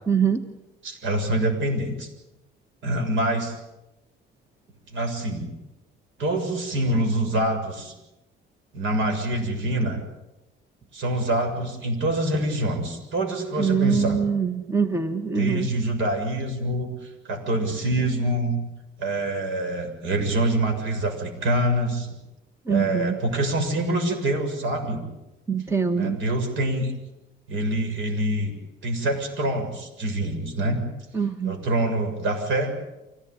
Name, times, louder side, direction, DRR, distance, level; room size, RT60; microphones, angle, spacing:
voice 1, 0.1-0.4 13.6-15.7 22.7-23.2 25.5-26.2 31.1-31.6, right 6 dB, 15° right, 8 dB, 1.2 m, -23 dB
voice 2, 0.8-2.1 2.8-3.6 4.9-5.5 6.2-7.9 8.7-10.0 10.9-14.2 15.4-18.6 19.0-22.1 22.7-25.0 26.0-26.9 27.5-28.5 28.8-30.9 31.4-32.7, right 1 dB, 65° right, 4 dB, 7.0 m, -25 dB
25.5 x 18.0 x 9.7 m, 0.98 s
cardioid pair, 155°, 21 cm